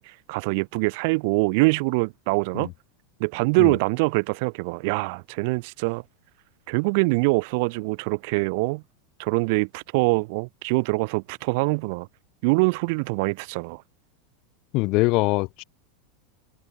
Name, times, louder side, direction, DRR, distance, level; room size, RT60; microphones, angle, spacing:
voice 1, 0.0-2.7 3.2-6.0 6.7-8.8 9.2-12.1 12.4-13.8, right 29 dB, 60° right, 2.6 m, -24 dB
voice 2, 14.7-15.6, left 24 dB, 55° left, 4.6 m, -23 dB
supercardioid pair, 120°, 0 cm